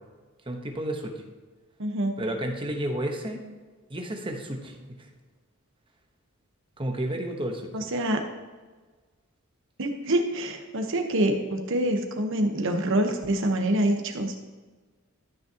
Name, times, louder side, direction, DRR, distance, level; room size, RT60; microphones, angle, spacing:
voice 1, 0.5-1.2 2.2-3.4 3.9-5.1 6.8-7.7, right 1 dB, 25° right, 3 dB, 1.0 m, -31 dB
voice 2, 1.8-2.2 7.7-8.2 9.8-14.3, right 1 dB, 65° right, 4 dB, 1.1 m, -26 dB
13.0 x 6.4 x 2.9 m, 1.4 s
head